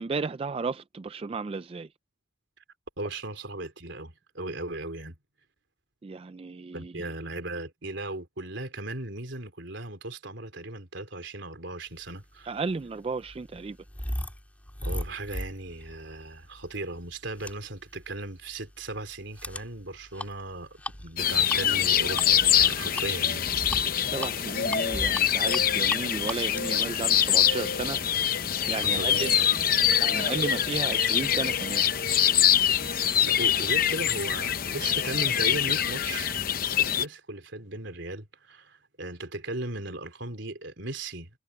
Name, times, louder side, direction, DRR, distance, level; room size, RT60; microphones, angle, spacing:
voice 1, 0.0-1.9 6.0-7.0 12.5-13.8 24.0-28.0 28.7-29.3 30.0-31.8, right 4 dB, 30° right, 0.3 m, -34 dB
voice 2, 3.0-5.2 6.7-12.6 14.8-23.5 28.8-29.7 32.7-36.4 36.7-41.3, right 2 dB, 65° right, 3.5 m, -37 dB
sound 1, 12.3-28.0, left 1 dB, 10° left, 3.1 m, -39 dB
sound 2, 21.2-37.1, left 9 dB, 45° left, 0.8 m, -24 dB
head